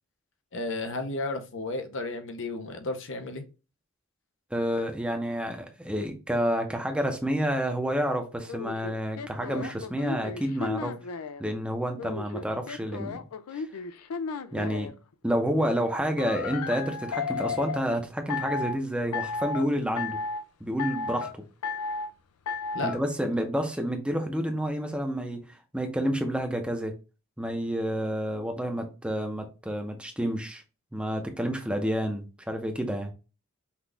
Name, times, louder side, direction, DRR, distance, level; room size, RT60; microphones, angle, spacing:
voice 1, 0.5-3.4 22.7-23.0, left 2 dB, 55° left, 0.8 m, -33 dB
voice 2, 4.5-10.9 11.4-13.2 13.5-13.7 14.5-14.9 15.2-20.2 20.6-21.3 22.8-25.4 25.7-26.9 27.4-30.6 30.9-33.1, equal, 5° right, 0.7 m, -29 dB
sound 1, 8.5-11.4 12.0-14.9 16.2-17.8 18.3-18.8 19.1-19.7 20.0-20.4 20.8-21.3 21.6-22.1 22.5-23.0, left 4 dB, 80° left, 0.4 m, -33 dB
5.8 x 2.4 x 3.3 m
head